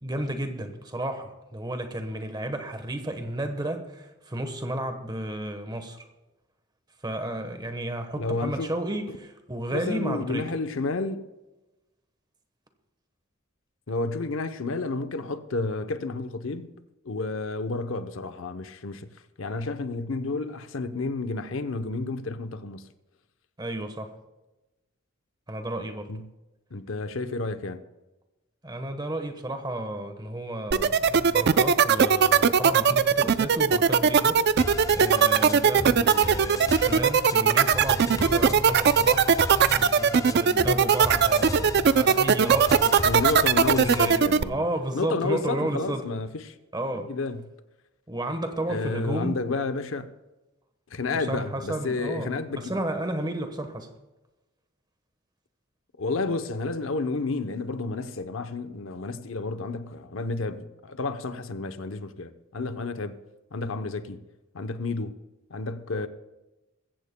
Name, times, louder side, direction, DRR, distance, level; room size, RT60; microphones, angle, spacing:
voice 1, 0.0-6.0 7.0-10.5 23.6-24.1 25.5-26.1 28.6-39.3 39.7-43.1 43.8-46.1 46.7-47.1 48.1-49.4 51.3-53.9, right 1 dB, 20° right, 1.1 m, -32 dB
voice 2, 8.1-8.7 9.1-9.2 9.7-11.3 13.9-16.8 17.0-19.1 19.4-22.9 26.1-26.3 26.7-27.8 43.0-44.7 44.9-46.5 46.9-47.5 48.7-50.1 50.9-52.8 56.0-63.2 63.5-64.2 64.5-65.2 65.5-66.1, left 3 dB, 70° left, 0.8 m, -31 dB
sound 1, 30.7-44.4, right 6 dB, 55° right, 0.4 m, -19 dB
sound 2, 34.6-44.2, left 1 dB, 15° left, 0.5 m, -35 dB
22.0 x 15.0 x 2.2 m
head